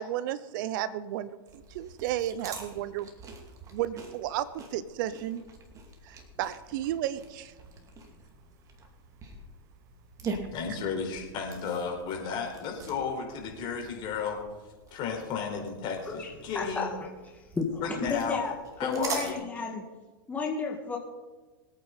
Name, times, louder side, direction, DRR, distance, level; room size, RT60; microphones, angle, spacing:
voice 1, 0.0-3.1 3.7-5.4 6.0-7.5, right 12 dB, 55° right, 16 dB, 0.7 m, -33 dB
sound 1, 1.5-19.3, right 4 dB, 25° right, 2.6 m, -44 dB
voice 2, 10.5-14.4 14.9-16.9 17.8-18.4 18.8-19.4, left 5 dB, 40° left, 1 dB, 4.6 m, -33 dB
voice 3, 16.1-17.1 17.3-17.8 18.1-18.5 18.8-19.8 20.3-21.0, left 4 dB, 10° left, 0 dB, 2.0 m, -32 dB
23.5 x 9.0 x 4.2 m, 1.3 s
hypercardioid pair, 120°, 13 cm